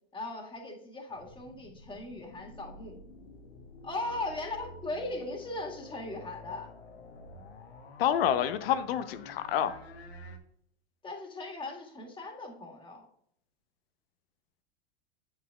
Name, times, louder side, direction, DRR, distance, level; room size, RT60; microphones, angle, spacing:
voice 1, 0.1-3.0 3.8-6.7 11.0-13.1, left 2 dB, 15° left, 1 dB, 1.8 m, -38 dB
sound 1, 1.1-10.4, left 2 dB, 85° left, 1.2 m, -49 dB
voice 2, 8.0-9.7, left 10 dB, 70° left, 12 dB, 0.8 m, -28 dB
8.5 x 8.0 x 2.4 m, 0.69 s
hypercardioid pair, 100°, 31 cm